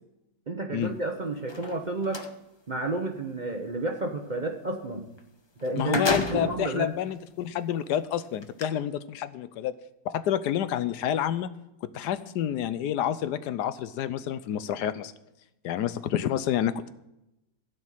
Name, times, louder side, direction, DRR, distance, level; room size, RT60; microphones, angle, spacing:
voice 1, 0.5-2.2 2.7-5.1 5.6-6.9, right 2 dB, 35° right, 3 dB, 0.7 m, -31 dB
sound 1, 1.4-2.3 5.2-5.3 5.6-6.7 7.4-7.5 8.4-8.6, left 3 dB, 30° left, 0.5 m, -31 dB
voice 2, 5.8-9.7 10.0-11.5 11.8-15.1 15.6-16.9, left 10 dB, 75° left, 14 dB, 1.1 m, -29 dB
16.0 x 5.3 x 8.8 m, 0.91 s
omnidirectional pair, 1.8 m